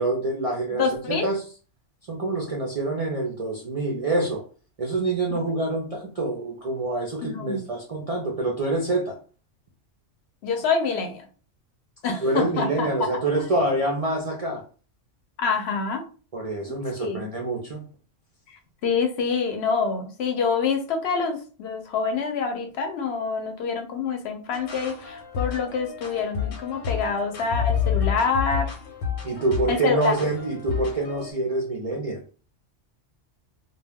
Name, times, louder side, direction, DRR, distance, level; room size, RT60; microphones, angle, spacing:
voice 1, 0.0-1.4 2.1-4.4 4.8-9.2 12.2-14.6 16.3-17.8 29.2-32.2, right 2 dB, 55° right, 0 dB, 0.4 m, -26 dB
voice 2, 0.8-1.3 5.3-5.6 7.2-7.6 10.4-11.3 12.0-13.2 15.4-16.0 17.0-17.3 18.8-28.7 29.7-30.2, left 5 dB, 65° left, 5 dB, 0.8 m, -26 dB
sound 1, 24.5-31.3, left 8 dB, 85° left, 1.0 m, -30 dB
2.2 x 2.2 x 3.4 m, 0.38 s
omnidirectional pair, 1.2 m